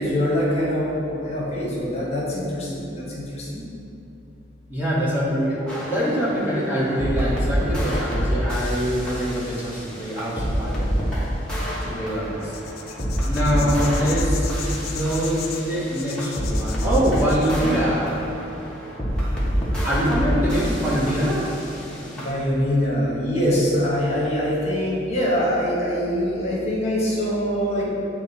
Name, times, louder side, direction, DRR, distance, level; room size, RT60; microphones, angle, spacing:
voice 1, 0.0-3.6 13.4-13.7 18.5-18.6 21.9-27.9, equal, 35° left, -5 dB, 1.2 m, -24 dB
voice 2, 4.7-10.9 11.8-12.5 13.2-18.1 19.8-21.5, equal, 10° right, -8 dB, 1.2 m, -24 dB
sound 1, 5.7-22.3, equal, 5° left, 1.2 m, -27 dB
sound 2, 12.4-17.6, left 8 dB, 55° left, 0.5 m, -37 dB
8.8 x 3.0 x 4.1 m, 2.7 s
head